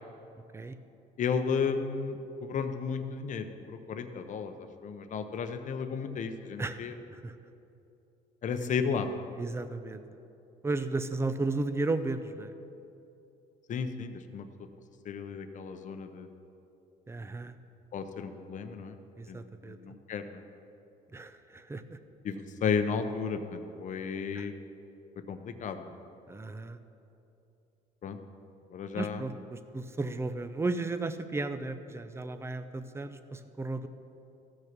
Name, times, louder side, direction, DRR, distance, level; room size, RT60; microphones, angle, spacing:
voice 1, 1.2-6.9 8.4-9.1 13.7-14.5 15.1-16.3 17.9-18.9 19.3-19.4 19.6-20.4 22.2-24.5 25.3-25.9 28.0-28.2 28.7-29.2, left 6 dB, 50° left, 8 dB, 0.8 m, -33 dB
voice 2, 9.4-10.0 10.6-12.5 17.1-17.6 19.2-19.8 21.1-22.0 24.3-24.5 26.3-26.8 28.9-33.9, right 3 dB, 15° right, 11 dB, 0.6 m, -34 dB
14.5 x 6.4 x 6.0 m, 2.8 s
cardioid pair, 110°, 17 cm